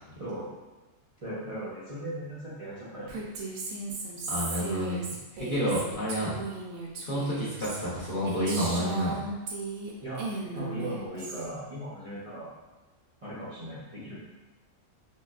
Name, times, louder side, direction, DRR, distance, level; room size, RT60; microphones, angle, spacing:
voice 1, 0.2-0.5 1.2-3.2 5.6-5.9 10.0-10.2 10.5-12.5 13.2-14.2, right 1 dB, 30° right, -10 dB, 0.7 m, -38 dB
Female speech woman speaking, 3.1-9.9 10.2-11.5, right 3 dB, 85° right, 1.1 m, -36 dB
voice 2, 4.3-5.0 5.4-6.4 7.0-9.3, equal, 45° left, -8 dB, 0.9 m, -29 dB
5.3 x 2.3 x 2.4 m, 1.2 s
omnidirectional pair, 1.4 m